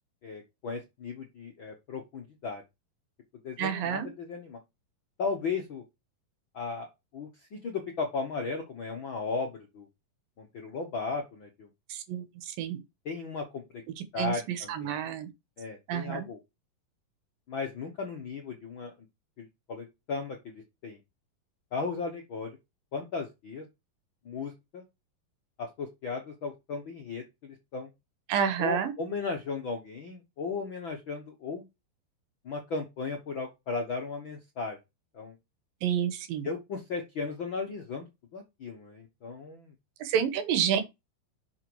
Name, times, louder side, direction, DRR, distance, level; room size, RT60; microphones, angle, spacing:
voice 1, 0.2-2.6 3.4-4.6 5.2-5.8 6.5-6.9 7.1-9.9 10.4-11.7 13.0-13.6 14.1-15.0 15.6-16.4 17.5-18.9 19.4-21.0 21.7-22.5 22.9-23.6 24.2-24.8 25.6-27.9 28.6-31.7 32.4-34.8 35.1-35.3 36.4-38.1 38.3-39.7, left 4 dB, 60° left, 1.2 m, -36 dB
voice 2, 3.6-4.1 11.9-12.2 12.6-12.8 14.2-14.3 14.7-15.3 15.9-16.3 28.3-28.9 35.8-36.5 40.0-40.8, right 8 dB, 75° right, 2.8 m, -28 dB
6.2 x 6.0 x 4.6 m
omnidirectional pair, 4.1 m